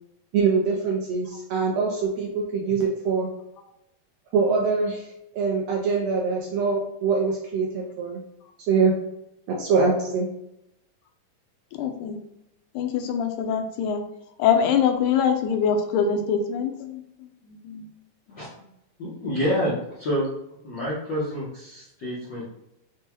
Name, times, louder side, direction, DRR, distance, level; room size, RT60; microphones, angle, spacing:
voice 1, 0.3-3.3 4.3-5.1 5.3-8.2 8.7-8.9 9.5-10.3, right 4 dB, 80° right, -1 dB, 1.6 m, -23 dB
voice 2, 11.8-12.2 12.8-14.0 14.4-17.0 17.5-17.9, left 7 dB, 90° left, 5 dB, 2.1 m, -23 dB
voice 3, 19.0-20.3 20.6-22.4, equal, 75° left, -8 dB, 1.0 m, -28 dB
6.0 x 2.3 x 2.9 m, 0.83 s
omnidirectional pair, 3.5 m